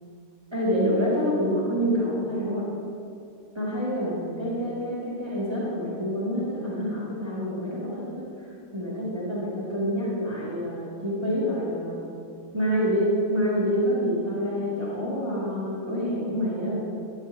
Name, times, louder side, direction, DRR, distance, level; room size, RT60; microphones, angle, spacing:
voice 1, 0.5-2.7 3.5-8.5 8.7-12.0 12.5-16.8, equal, 15° right, -8 dB, 2.2 m, -27 dB
12.5 x 11.0 x 2.8 m, 2.4 s
omnidirectional pair, 1.8 m